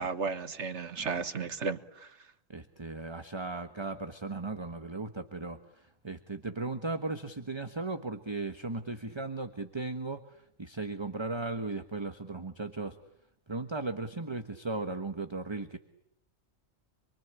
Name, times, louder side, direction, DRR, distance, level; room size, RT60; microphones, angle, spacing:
voice 1, 0.0-2.2, right 5 dB, 60° right, 11 dB, 1.7 m, -34 dB
voice 2, 2.5-13.0 13.5-15.8, right 3 dB, 20° right, 8 dB, 1.3 m, -37 dB
27.5 x 24.0 x 8.9 m, 0.74 s
omnidirectional pair, 1.3 m